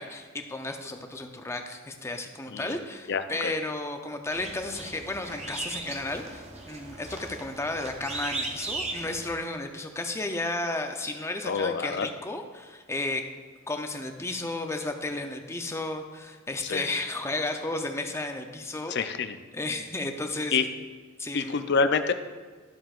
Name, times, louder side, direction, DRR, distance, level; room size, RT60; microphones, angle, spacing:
voice 1, 0.0-13.3 13.7-18.9 19.5-20.5 21.2-21.6, left 2 dB, 15° left, 5 dB, 0.6 m, -33 dB
voice 2, 2.5-2.8 3.1-3.5 11.4-12.1 16.6-16.9 18.9-19.4 20.5-20.6 21.3-22.1, left 5 dB, 55° left, 9 dB, 0.5 m, -27 dB
sound 1, 4.3-9.4, right 2 dB, 30° right, 0.9 m, -37 dB
12.0 x 7.5 x 2.5 m, 1.5 s
head